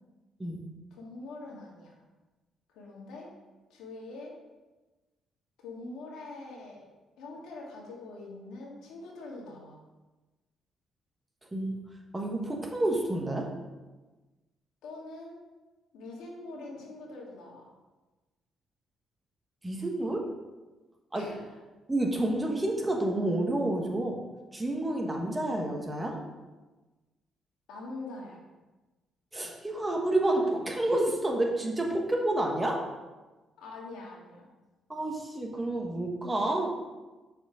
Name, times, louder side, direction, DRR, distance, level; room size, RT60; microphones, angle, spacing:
voice 1, 0.9-2.0 2.7-3.3 3.7-4.3 5.6-6.9 7.2-9.8 14.8-15.4 15.9-17.7 21.1-21.5 27.7-28.4 33.6-34.5, left 2 dB, 90° left, -2 dB, 1.6 m, -44 dB
voice 2, 12.1-13.5 19.6-20.3 21.1-21.3 21.9-24.2 24.5-26.2 29.3-32.8 34.9-36.7, right 1 dB, 15° right, 1 dB, 1.2 m, -29 dB
6.0 x 4.4 x 4.9 m, 1.2 s
cardioid pair, 90°, 0 cm